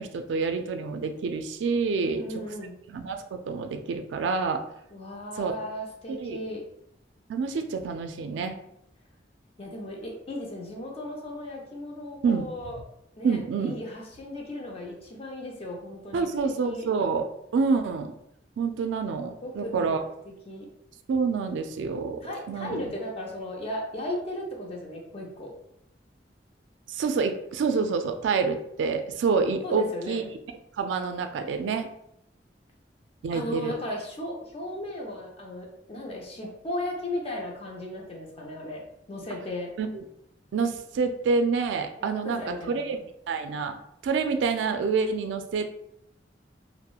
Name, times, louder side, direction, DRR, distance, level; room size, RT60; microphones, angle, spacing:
voice 1, 0.0-2.2 2.9-4.6 5.4-5.5 6.1-6.4 7.3-8.6 12.2-12.5 13.2-13.8 16.1-17.3 17.5-18.1 18.6-20.0 21.1-22.9 26.9-30.2 30.8-31.9 33.2-33.7 39.8-40.0 40.5-42.4 42.7-43.0 43.3-43.8 44.0-45.7, right 5 dB, 85° right, 7 dB, 0.3 m, -27 dB
voice 2, 2.0-2.7 4.9-6.6 9.6-12.8 13.2-16.9 19.4-20.7 22.2-25.5 29.6-30.2 33.3-39.7 42.0-42.9, left 1 dB, 35° left, 0 dB, 0.5 m, -36 dB
2.8 x 2.0 x 2.3 m, 0.76 s
head